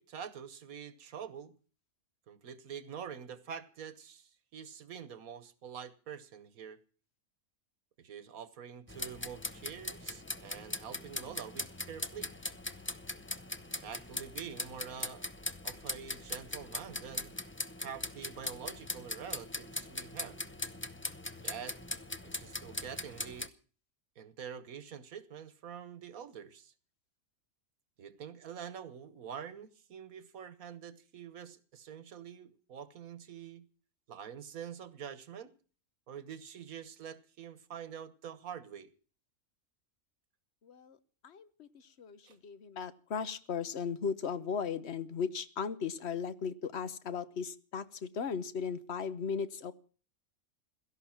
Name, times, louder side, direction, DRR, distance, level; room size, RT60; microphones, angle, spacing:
voice 1, 0.0-1.5 2.3-6.8 8.0-12.3 13.7-15.3 15.6-17.3 17.8-20.4 21.4-21.8 22.2-23.5 24.2-26.7 28.0-33.7 34.1-35.5 36.1-38.9 42.3-42.4, right 8 dB, 80° right, 1.6 m, -46 dB
sound 1, 8.9-23.5, left 2 dB, 15° left, 0.4 m, -40 dB
voice 2, 40.6-41.0 41.2-49.7, left 6 dB, 55° left, 1.2 m, -37 dB
17.0 x 13.0 x 5.9 m
omnidirectional pair, 1.5 m